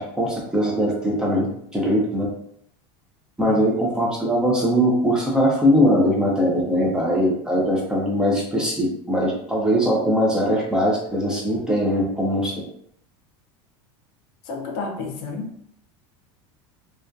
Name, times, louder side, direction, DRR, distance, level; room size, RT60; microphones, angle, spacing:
voice 1, 0.0-1.5 1.7-2.3 3.4-12.5, equal, 5° right, -4 dB, 0.4 m, -21 dB
voice 2, 14.4-15.5, left 4 dB, 50° left, 2 dB, 0.5 m, -31 dB
2.5 x 2.2 x 2.2 m, 0.70 s
supercardioid pair, 150°, 13 cm